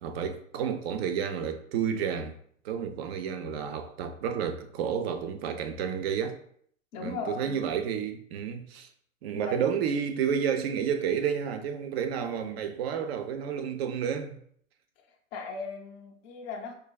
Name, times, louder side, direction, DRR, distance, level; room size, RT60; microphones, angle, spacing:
voice 1, 0.0-2.4 2.6-6.4 7.0-8.9 9.2-14.4, right 7 dB, 50° right, 0.5 m, -31 dB
voice 2, 6.9-7.6 9.3-9.6 15.3-16.7, left 4 dB, 20° left, 0.3 m, -37 dB
4.6 x 2.3 x 2.3 m
hypercardioid pair, 105°, 40 cm